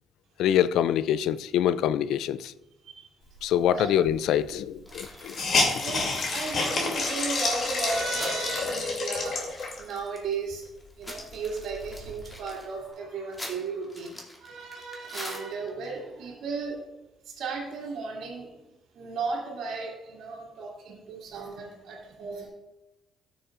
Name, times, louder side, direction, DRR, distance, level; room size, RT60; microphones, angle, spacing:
voice 1, 0.4-2.5 3.4-5.3, left 10 dB, 85° left, 0.3 m, -25 dB
Hiss, 4.1-4.2 4.4-4.5 4.9-10.0 10.5-10.6 11.0-12.4, left 3 dB, 60° left, 2.7 m, -29 dB
sound 1, 4.9-8.4 8.8-8.9 9.1-10.4 10.8-15.8, left 1 dB, 15° left, 2.5 m, -44 dB
voice 2, 5.8-10.7 11.0-16.8 17.2-18.5 18.9-22.5, right 4 dB, 80° right, 2.2 m, -35 dB
14.0 x 7.0 x 2.5 m
cardioid pair, 90°, 0 cm